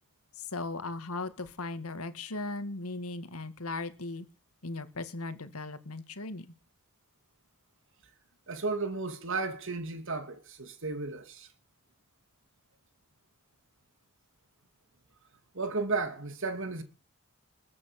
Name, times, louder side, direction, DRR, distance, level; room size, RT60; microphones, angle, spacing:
voice 1, 0.4-4.3 4.6-6.5, left 3 dB, 85° left, 2.0 m, -37 dB
voice 2, 8.5-11.5 15.5-16.8, right 3 dB, 60° right, 2.7 m, -34 dB
21.5 x 8.4 x 6.5 m
head